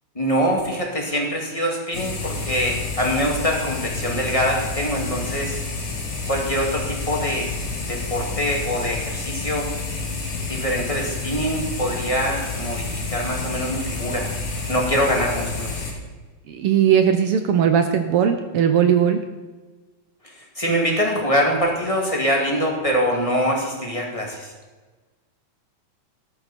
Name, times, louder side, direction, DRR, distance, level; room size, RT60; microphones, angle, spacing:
voice 1, 0.2-5.6 6.3-7.5 7.9-9.7 10.5-14.3 14.7-15.7 20.4-24.5, equal, 15° left, -1 dB, 1.8 m, -24 dB
sound 1, 1.9-15.9, left 3 dB, 55° left, 3.9 m, -29 dB
voice 2, 16.5-19.2, right 8 dB, 80° right, 7 dB, 1.3 m, -18 dB
13.5 x 12.0 x 4.3 m, 1.3 s
omnidirectional pair, 3.5 m